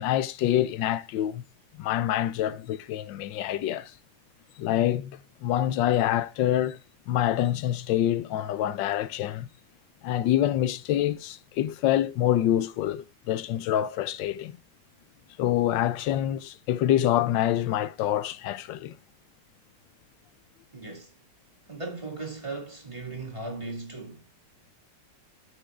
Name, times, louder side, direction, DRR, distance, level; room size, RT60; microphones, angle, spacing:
voice 1, 0.0-1.4 1.8-3.9 4.6-6.8 7.1-9.5 10.0-14.5 15.4-18.9, left 12 dB, 90° left, 1.3 m, -26 dB
voice 2, 20.7-21.2 21.6-24.3, right 3 dB, 15° right, 2.1 m, -37 dB
13.0 x 6.1 x 2.4 m
omnidirectional pair, 2.0 m